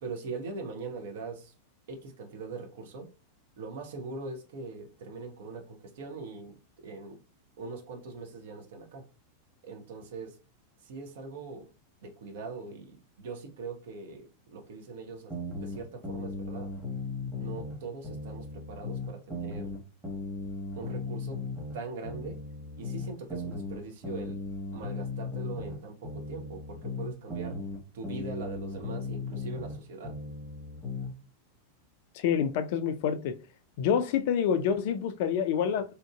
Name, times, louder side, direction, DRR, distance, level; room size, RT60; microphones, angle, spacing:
voice 1, 0.0-1.5 1.9-3.1 3.6-6.6 6.8-7.2 7.6-9.1 9.6-10.4 10.8-11.7 12.0-15.3 15.6-16.7 17.4-19.8 20.8-21.4 21.7-22.4 22.8-24.4 24.7-27.6 27.9-30.2, right 4 dB, 55° right, 0.6 m, -41 dB
sound 1, 15.3-17.8 18.0-21.8 22.0-25.8 26.0-29.8 30.0-31.1, left 3 dB, 10° right, 1.1 m, -37 dB
voice 2, 32.1-33.4 33.8-35.9, left 8 dB, 50° left, 0.3 m, -27 dB
2.8 x 2.5 x 2.3 m
figure-of-eight pair, 90°, 0 cm